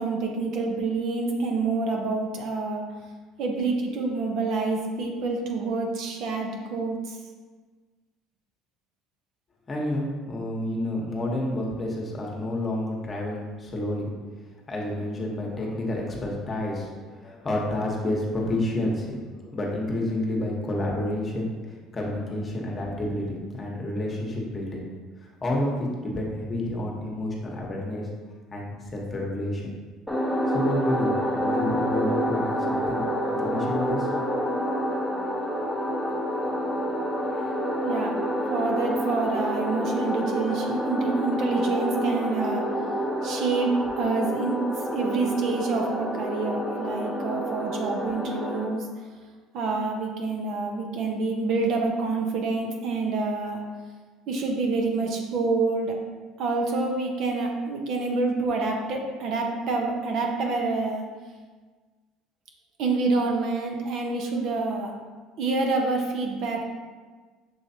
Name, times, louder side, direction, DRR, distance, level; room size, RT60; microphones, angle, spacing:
voice 1, 0.0-2.9 3.4-7.2 37.8-38.2 38.5-42.7 43.2-44.6 44.9-48.9 49.5-53.6 54.3-56.0 56.4-61.1 62.8-64.9 65.4-66.6, right 3 dB, 65° right, 1 dB, 0.8 m, -27 dB
voice 2, 9.7-14.1 14.7-24.8 25.4-28.1 28.5-29.7 30.5-33.0 33.3-34.1, left 1 dB, 30° left, -2 dB, 1.1 m, -29 dB
sound 1, 30.1-48.6, equal, ahead, 0.9 m, -28 dB
6.3 x 3.0 x 2.8 m, 1.4 s
supercardioid pair, 100°, 0 cm